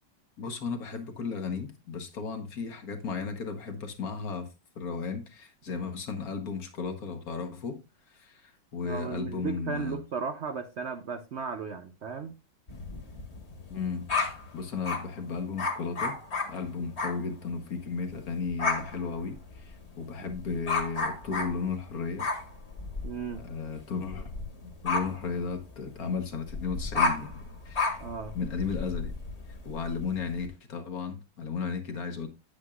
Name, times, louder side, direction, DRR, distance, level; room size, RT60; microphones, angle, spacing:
voice 1, 0.4-4.5 4.7-7.8 8.1-10.0 13.7-16.1 16.5-22.3 23.3-24.3 24.6-28.0 28.3-29.1 29.6-32.3, left 5 dB, 55° left, 1.5 m, -34 dB
voice 2, 8.8-12.3 16.8-16.9 23.0-23.4 28.0-28.4, right 5 dB, 75° right, 0.6 m, -36 dB
sound 1, 12.7-15.1 15.6-17.2 17.5-17.8 18.1-30.5, left 4 dB, 35° left, 1.7 m, -33 dB
9.4 x 8.7 x 2.4 m
omnidirectional pair, 2.1 m